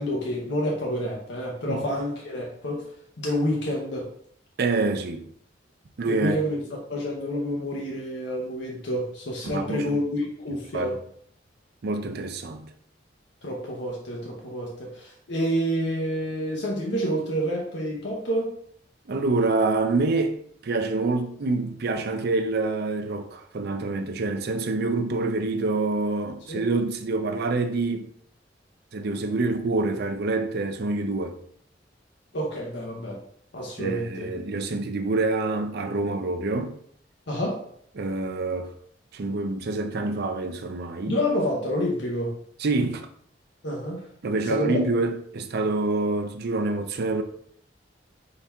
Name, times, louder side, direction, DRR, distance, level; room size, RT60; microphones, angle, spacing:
voice 1, 0.0-4.1 6.0-11.0 13.4-18.6 26.5-26.6 32.3-33.2 33.5-34.3 37.3-37.6 41.1-42.4 43.6-44.1 44.4-44.8, equal, 70° left, 0.8 m, -28 dB
voice 2, 4.6-5.3 6.0-6.4 9.4-9.8 10.7-10.9 11.8-12.7 19.1-20.4 20.6-28.1 28.9-31.4 33.8-36.7 38.0-38.7 39.1-41.1 42.6-43.0 44.2-47.2, right 3 dB, 60° right, 0.5 m, -26 dB
3.9 x 2.8 x 4.5 m
head